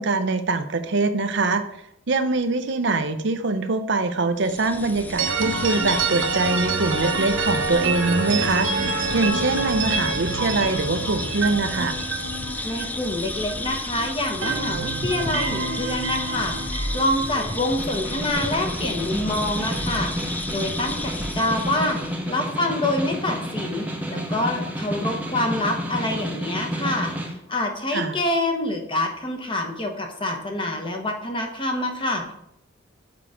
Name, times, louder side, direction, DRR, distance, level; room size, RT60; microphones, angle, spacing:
voice 1, 0.0-1.6 2.1-12.0 27.9-28.2, right 3 dB, 60° right, 9 dB, 0.6 m, -23 dB
sound 1, 4.4-22.2, left 1 dB, 10° left, 0.4 m, -32 dB
sound 2, 5.2-13.9 14.2-18.3, right 4 dB, 80° right, 1.1 m, -27 dB
voice 2, 12.6-32.3, left 1 dB, 25° left, 3 dB, 1.1 m, -26 dB
Snare drum, 17.7-27.3, equal, 10° right, 0.9 m, -30 dB
7.0 x 5.6 x 5.0 m, 0.75 s
head